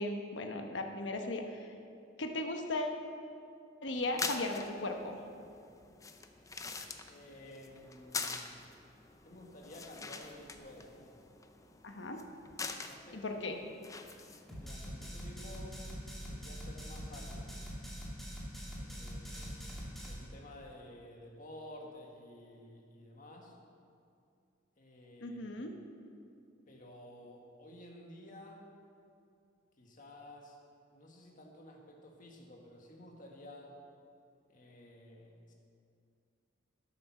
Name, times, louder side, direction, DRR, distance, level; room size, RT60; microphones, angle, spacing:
voice 1, 0.0-1.7 2.2-3.0 3.8-5.2 11.8-12.2 13.1-13.6 25.2-25.7, left 2 dB, 70° left, 4 dB, 1.1 m, -37 dB
sound 1, 3.9-14.7, left 4 dB, 15° left, 0.6 m, -45 dB
voice 2, 7.1-8.5 9.2-11.1 12.8-13.2 14.5-15.8 16.3-17.5 18.7-19.6 20.0-23.6 24.8-25.4 26.7-28.7 29.8-30.6 30.9-33.7 34.5-35.5, left 1 dB, 45° left, 0 dB, 1.7 m, -52 dB
sound 2, 14.5-20.1, equal, ahead, 2.3 m, -43 dB
11.5 x 8.6 x 6.0 m, 2.5 s
head